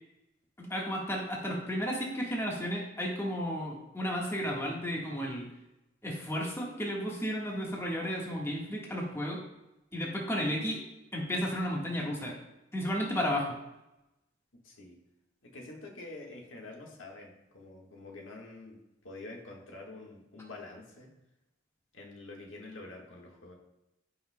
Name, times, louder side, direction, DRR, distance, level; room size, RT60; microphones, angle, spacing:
voice 1, 0.6-5.5 6.0-9.4 9.9-10.8 11.1-12.4 12.7-13.5, equal, 15° left, -3 dB, 1.5 m, -33 dB
voice 2, 14.6-15.0 15.4-18.8 19.0-21.1 21.9-23.5, left 2 dB, 85° left, -1 dB, 1.6 m, -47 dB
15.0 x 5.6 x 2.2 m, 0.93 s
head